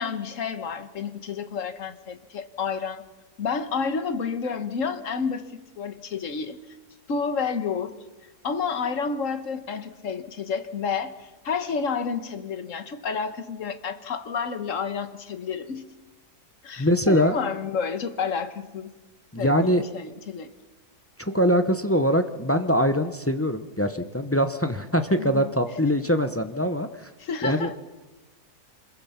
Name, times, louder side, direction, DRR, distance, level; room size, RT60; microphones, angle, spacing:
voice 1, 0.0-3.0 3.4-6.6 7.1-8.0 8.4-15.9 16.6-18.9 19.4-20.5 25.2-25.5 27.2-27.8, left 5 dB, 50° left, 1.6 m, -30 dB
voice 2, 16.8-17.4 19.3-19.8 21.2-27.1 27.4-27.7, equal, 15° left, 0.5 m, -23 dB
26.5 x 21.5 x 5.8 m
omnidirectional pair, 1.8 m